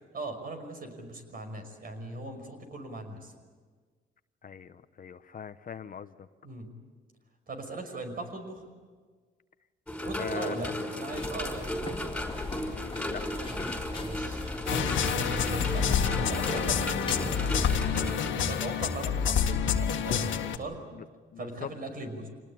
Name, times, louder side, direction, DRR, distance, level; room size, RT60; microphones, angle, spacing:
voice 1, 0.1-3.3 6.4-6.7 7.5-8.7 10.0-10.7 11.0-11.6 14.0-14.4 14.7-17.8 18.3-20.8 21.4-22.3, right 2 dB, 45° right, 6 dB, 5.6 m, -39 dB
voice 2, 4.4-6.3 10.2-10.8 12.6-13.2 20.9-21.0 21.3-21.7, left 7 dB, 45° left, 11 dB, 1.0 m, -41 dB
sound 1, 9.9-18.3, equal, 5° left, 5.5 m, -35 dB
sound 2, 11.1-17.3, left 3 dB, 25° left, 2.8 m, -39 dB
sound 3, 14.7-20.6, left 7 dB, 75° left, 1.9 m, -28 dB
26.5 x 19.5 x 8.8 m, 1.5 s
cardioid pair, 90°, 20 cm